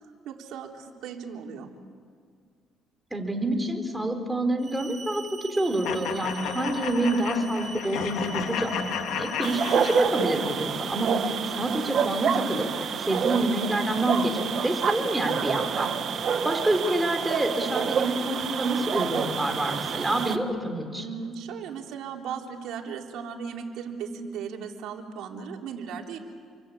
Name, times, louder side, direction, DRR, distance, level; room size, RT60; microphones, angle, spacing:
voice 1, 0.3-1.7 21.0-26.2, right 6 dB, 80° right, 1 dB, 3.6 m, -37 dB
voice 2, 3.1-21.1, right 1 dB, 10° right, 4 dB, 4.2 m, -27 dB
sound 1, 4.6-10.0, right 5 dB, 30° right, 3.7 m, -42 dB
sound 2, 5.8-10.4, left 9 dB, 85° left, 1.9 m, -33 dB
sound 3, 9.4-20.4, right 7 dB, 50° right, 1.6 m, -28 dB
28.5 x 24.0 x 8.7 m, 2.1 s
cardioid pair, 120°, 0 cm